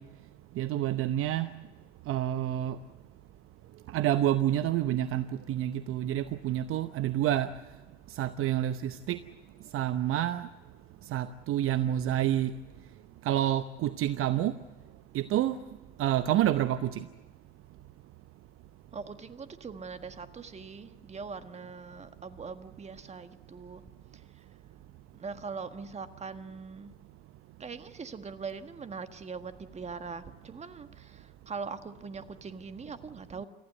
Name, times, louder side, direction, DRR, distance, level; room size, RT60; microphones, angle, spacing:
voice 1, 0.6-1.5 2.1-2.8 3.9-7.5 8.1-9.2 9.7-10.5 11.1-12.5 13.2-14.6 15.1-15.6 16.0-17.1, right 12 dB, 40° right, 12 dB, 0.9 m, -28 dB
voice 2, 18.9-23.8 25.1-26.9 27.6-33.5, right 5 dB, 20° right, 10 dB, 1.6 m, -41 dB
29.0 x 15.0 x 7.8 m, 1.3 s
hypercardioid pair, 85°, 33 cm